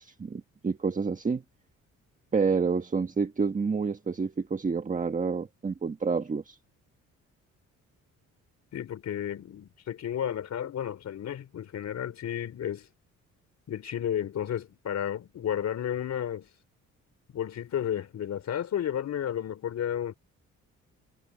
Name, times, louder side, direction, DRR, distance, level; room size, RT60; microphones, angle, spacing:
voice 1, 0.0-1.4 2.3-6.6, right 5 dB, 25° right, 1.4 m, -28 dB
voice 2, 8.7-12.9 13.7-16.5 17.3-20.1, left 9 dB, 60° left, 3.6 m, -32 dB
cardioid pair, 90°, 30 cm